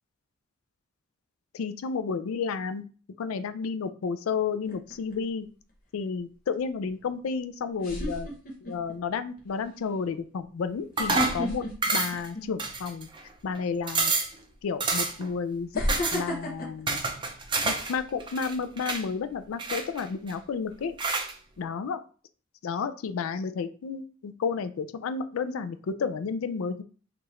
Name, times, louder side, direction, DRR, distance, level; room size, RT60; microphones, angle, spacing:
voice 1, 1.5-2.9 3.2-5.5 5.9-8.3 8.6-11.7 11.9-13.1 13.4-14.1 14.6-15.8 16.1-17.0 17.6-20.9 21.6-22.0 22.6-26.8, left 5 dB, 90° left, 11 dB, 0.4 m, -31 dB
sound 1, 4.7-5.2 7.1-7.2 7.8-8.9 9.4-9.6 10.9-12.8 13.2-13.4 14.4-14.5 15.7-18.0 18.4-18.7, left 1 dB, 40° left, 0.8 m, -33 dB
sound 2, 11.0-11.4 11.8-12.3 12.6-13.2 13.6-13.7 13.9-14.4 14.8-15.3 15.9-16.2 16.9-17.9 18.2-19.0 19.6-20.3 21.0-21.3, right 3 dB, 25° right, 0.5 m, -28 dB
4.6 x 2.5 x 3.1 m, 0.39 s
head